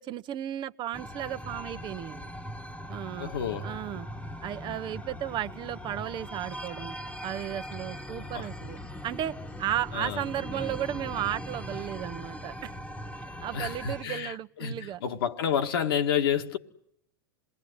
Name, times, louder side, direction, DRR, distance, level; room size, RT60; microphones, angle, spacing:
voice 1, 0.0-2.3 2.9-3.3 3.6-4.1 4.4-12.7 13.4-15.0, right 11 dB, 40° right, 0.9 m, -34 dB
sound 1, 0.9-14.0, equal, 10° left, 1.4 m, -40 dB
voice 2, 3.2-3.7 8.1-8.5 9.9-10.2 13.5-16.6, left 8 dB, 75° left, 2.0 m, -30 dB
27.5 x 20.0 x 9.6 m
hypercardioid pair, 105°, 12 cm